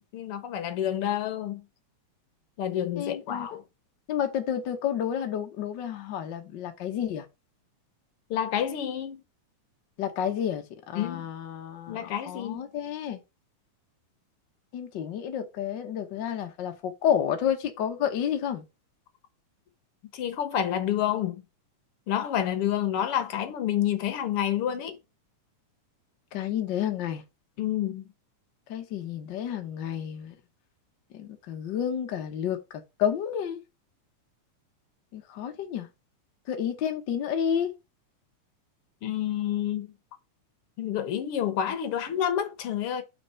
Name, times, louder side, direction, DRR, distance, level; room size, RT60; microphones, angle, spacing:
voice 1, 0.1-1.6 2.6-3.6 8.3-9.2 10.9-11.2 11.9-12.6 20.1-21.4 22.1-25.0 27.6-28.0 39.0-39.9 40.8-43.0, left 10 dB, 65° left, 1.5 m, -29 dB
voice 2, 3.0-3.5 4.1-7.2 10.0-13.2 14.7-18.6 26.3-27.2 28.7-30.3 31.1-32.6 33.0-33.6 35.1-35.9 36.5-37.7, left 9 dB, 85° left, 1.0 m, -30 dB
5.9 x 4.4 x 5.6 m
omnidirectional pair, 3.5 m